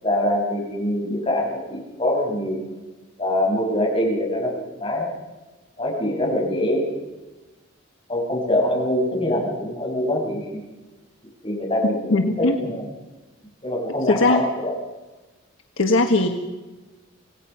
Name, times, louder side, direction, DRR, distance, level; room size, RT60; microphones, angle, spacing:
voice 1, 0.0-2.6 3.2-5.1 5.8-6.9 8.1-10.4 11.4-12.8 13.6-14.7, left 1 dB, 25° left, -3 dB, 7.1 m, -24 dB
voice 2, 12.1-12.6 14.0-14.4 15.8-16.3, left 2 dB, 75° left, 4 dB, 1.5 m, -19 dB
27.0 x 18.0 x 5.8 m, 1.2 s
head